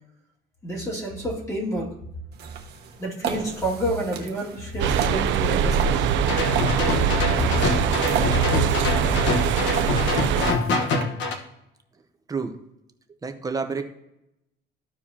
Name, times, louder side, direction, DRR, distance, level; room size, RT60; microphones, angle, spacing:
voice 1, 0.6-2.0 3.0-6.1 7.2-7.3 8.3-8.4, right 1 dB, 15° left, -4 dB, 2.3 m, -29 dB
sound 1, 2.3-11.0, right 7 dB, 55° right, 1.2 m, -36 dB
sound 2, 4.8-10.5, right 7 dB, 70° right, 0.5 m, -23 dB
sound 3, 6.2-11.3, left 3 dB, 65° left, 1.2 m, -25 dB
voice 2, 13.2-13.8, right 4 dB, 20° right, 5 dB, 0.9 m, -29 dB
14.0 x 4.7 x 2.8 m, 0.85 s
cardioid pair, 135°, 20 cm